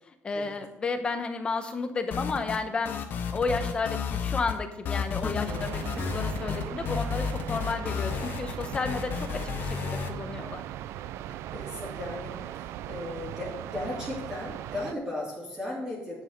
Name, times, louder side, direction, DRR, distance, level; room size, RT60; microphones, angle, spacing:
voice 1, 0.1-3.1 3.3-10.6, left 4 dB, 25° left, 7 dB, 0.9 m, -32 dB
sound 1, 2.1-2.6 2.9-4.6 4.9-10.1, left 6 dB, 50° left, 0.9 m, -32 dB
voice 2, 5.2-5.6 11.5-16.2, left 1 dB, 15° right, -9 dB, 2.9 m, -36 dB
sound 2, 5.5-14.9, right 12 dB, 90° right, 0.4 m, -39 dB
10.5 x 5.6 x 6.4 m, 0.86 s
cardioid pair, 175°, 4 cm